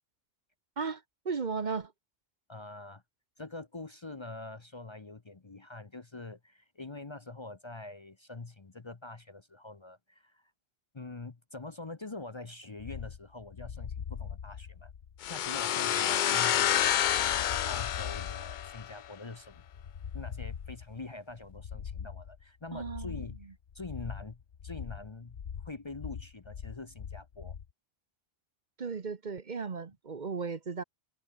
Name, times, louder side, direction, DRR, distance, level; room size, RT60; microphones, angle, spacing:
voice 1, 0.8-1.9 22.7-23.2 28.8-30.8, right 5 dB, 50° right, 1.1 m, -36 dB
voice 2, 2.5-3.0 3.4-10.5 10.9-14.9 15.3-19.6 20.1-27.5, left 3 dB, 30° left, 0.9 m, -45 dB
sound 1, 12.8-27.7, left 7 dB, 75° left, 1.3 m, -42 dB
sound 2, 15.2-18.9, left 11 dB, 60° left, 0.6 m, -28 dB
omnidirectional pair, 1.0 m